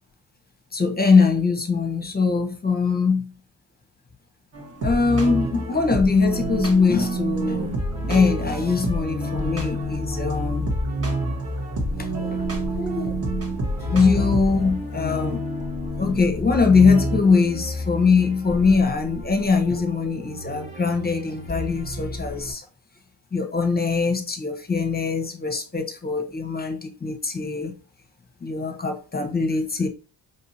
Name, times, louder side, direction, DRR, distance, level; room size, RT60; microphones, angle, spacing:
voice 1, 0.7-3.3 4.8-7.7 8.0-10.6 12.0-12.4 12.7-13.2 13.9-15.4 16.0-22.6 23.3-27.7 28.4-29.9, left 4 dB, 20° left, 1.0 m, -22 dB
sound 1, 4.5-17.3, right 1 dB, 30° right, 1.3 m, -28 dB
sound 2, 4.8-22.5, left 2 dB, 15° right, 1.3 m, -34 dB
5.3 x 2.7 x 2.8 m
cardioid pair, 80°, 46 cm